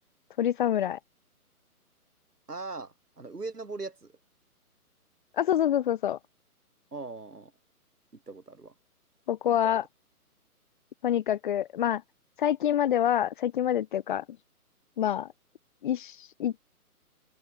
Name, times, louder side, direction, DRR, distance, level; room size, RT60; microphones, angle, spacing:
voice 1, 0.4-1.0 5.4-6.2 9.3-9.8 11.0-12.0 12.4-14.2 15.0-15.3 15.8-16.5, left 10 dB, 35° left, 1.3 m, -26 dB
voice 2, 2.5-4.1 6.9-7.5 8.1-8.7, right 3 dB, 90° right, 7.0 m, -40 dB
open air
figure-of-eight pair, 145°, 45 cm